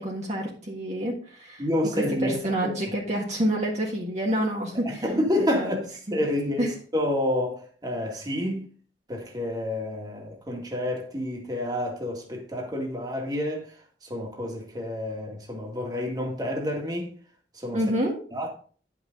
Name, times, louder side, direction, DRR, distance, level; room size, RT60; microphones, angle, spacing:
voice 1, 0.0-1.7 1.9-5.0 5.4-5.7 6.1-6.2 6.6-6.7 17.7-18.2, right 1 dB, 40° right, 1.6 m, -28 dB
voice 2, 1.6-2.9 4.9-8.7 9.1-13.7 14.0-17.1 17.5-17.8 18.3-18.5, left 1 dB, 25° right, 2.0 m, -29 dB
10.5 x 6.0 x 3.9 m
head